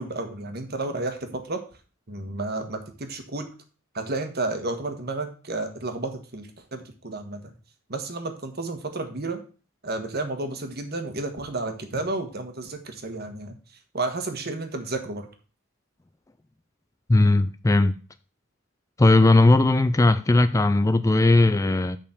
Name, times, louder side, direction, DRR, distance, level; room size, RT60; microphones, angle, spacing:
voice 1, 0.0-1.6 2.1-3.5 3.9-7.5 7.9-9.4 9.8-13.5 13.9-15.3, right 2 dB, 50° right, 1.4 m, -31 dB
voice 2, 17.1-17.9 19.0-22.0, left 2 dB, 15° left, 0.4 m, -18 dB
6.7 x 5.3 x 7.2 m
head